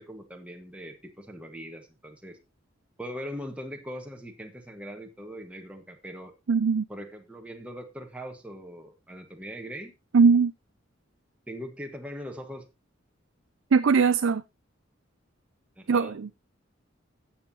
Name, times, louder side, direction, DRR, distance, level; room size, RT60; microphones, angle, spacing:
voice 1, 0.0-2.4 3.0-6.3 6.9-9.9 11.5-12.6 15.8-16.1, equal, 5° right, 1.3 m, -41 dB
voice 2, 6.5-6.8 10.1-10.5 13.7-14.4 15.9-16.3, right 5 dB, 70° right, 0.5 m, -20 dB
15.5 x 7.3 x 2.8 m
head